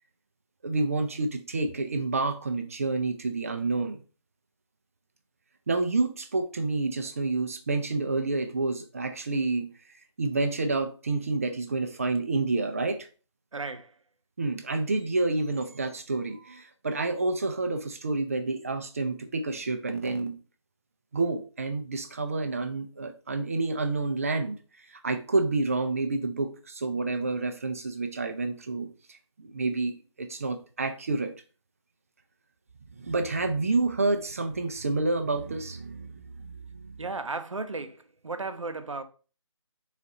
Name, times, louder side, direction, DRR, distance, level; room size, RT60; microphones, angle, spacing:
voice 1, 0.6-4.0 5.7-9.7 10.2-13.1 14.4-20.4 21.1-24.6 24.9-31.3 33.0-36.3 36.8-37.0, right 3 dB, 30° right, 0.4 m, -29 dB
voice 2, 13.5-14.0 37.0-39.0, right 3 dB, 80° right, 0.6 m, -35 dB
4.1 x 2.4 x 4.0 m
figure-of-eight pair, 155°, 16 cm